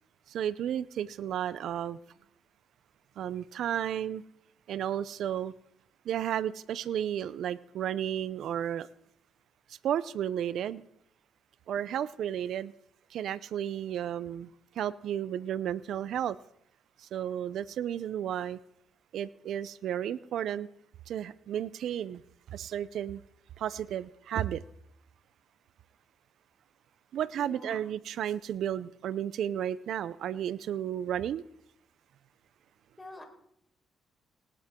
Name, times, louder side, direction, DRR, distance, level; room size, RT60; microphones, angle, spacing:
voice 1, 0.3-2.0 3.2-4.2 4.7-5.5 6.0-8.9 9.8-10.8 11.7-12.7 13.1-14.5 14.8-16.4 17.0-18.6 19.1-20.7 21.1-22.2 22.5-23.2 23.6-24.6 27.1-31.4, right 10 dB, 70° right, 0.6 m, -33 dB
voice 2, 27.4-27.8 33.0-33.2, left 1 dB, 20° left, 4.4 m, -45 dB
18.5 x 18.5 x 3.7 m
cardioid pair, 90°, 0 cm